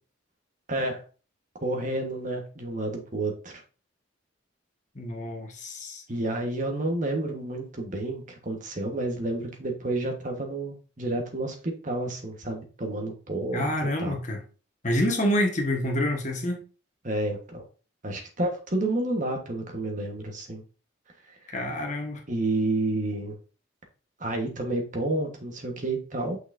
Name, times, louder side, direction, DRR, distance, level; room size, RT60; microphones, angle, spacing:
voice 1, 0.7-1.0 1.6-3.6 6.1-13.7 14.0-14.2 17.0-17.6 18.0-20.6 21.3-21.5 22.3-23.4 24.2-26.4, right 2 dB, 40° right, 1.4 m, -30 dB
voice 2, 4.9-6.0 13.5-14.4 14.8-16.6 21.5-22.2, left 1 dB, 35° left, 1.4 m, -27 dB
6.2 x 5.7 x 2.7 m
head